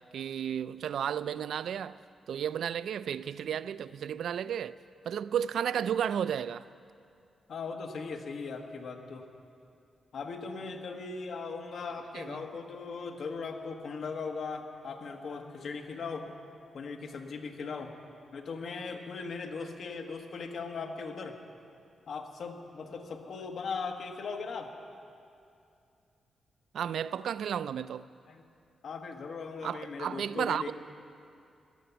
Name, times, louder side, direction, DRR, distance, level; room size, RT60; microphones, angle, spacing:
voice 1, 0.0-2.0 2.3-4.8 5.1-6.7 12.2-12.5 26.7-28.1 29.6-30.6, right 9 dB, 80° right, 0.3 m, -33 dB
voice 2, 7.5-9.3 10.1-16.4 16.7-18.0 18.3-21.4 22.1-24.7 28.3-28.4 28.8-30.7, left 4 dB, 60° left, 1.3 m, -39 dB
16.5 x 11.0 x 6.9 m
wide cardioid pair, 140°, 0 cm